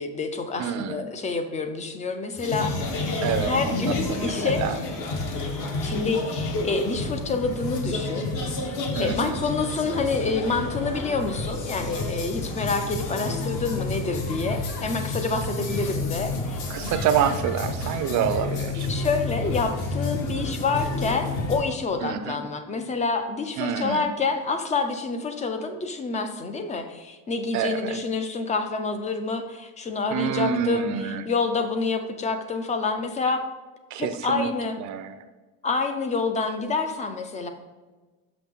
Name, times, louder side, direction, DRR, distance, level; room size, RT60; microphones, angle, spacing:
voice 1, 0.0-4.7 5.8-8.3 8.6-8.7 9.0-16.6 18.9-33.4 34.0-34.8 35.6-37.5, left 4 dB, 20° left, 7 dB, 0.4 m, -28 dB
voice 2, 0.6-1.0 3.2-4.8 8.9-9.4 16.7-18.9 22.0-22.4 23.6-24.1 27.5-28.0 30.1-31.2 33.9-34.5 34.8-35.2, right 8 dB, 50° right, 9 dB, 0.5 m, -27 dB
sound 1, 2.4-21.6, left 2 dB, 55° left, 1.1 m, -30 dB
5.9 x 5.8 x 3.6 m, 1.2 s
cardioid pair, 160°, 38 cm